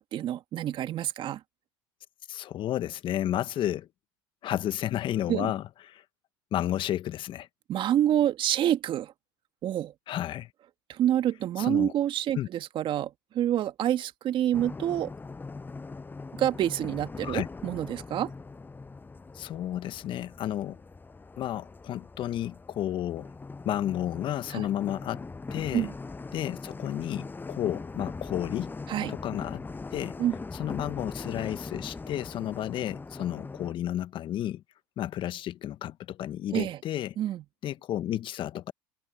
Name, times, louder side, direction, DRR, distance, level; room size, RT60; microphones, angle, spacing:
voice 1, 0.0-1.4 5.3-5.5 7.7-9.1 9.6-9.9 10.9-15.1 16.4-18.3 24.5-24.7 25.7-25.9 28.9-29.1 30.2-30.4 36.5-36.8 37.2-37.4, right 11 dB, 45° right, 1.9 m, -27 dB
voice 2, 2.3-3.9 4.4-6.0 6.5-7.5 10.1-10.5 11.6-11.9 12.3-12.5 17.2-17.5 19.3-20.8 21.4-23.3 23.6-25.2 25.5-25.9 26.3-28.7 29.1-29.6 29.9-30.2 30.6-34.6 35.0-37.1 37.6-38.7, left 12 dB, 45° left, 1.4 m, -32 dB
sound 1, 14.5-33.7, left 3 dB, 15° left, 7.0 m, -41 dB
hypercardioid pair, 85°, 11 cm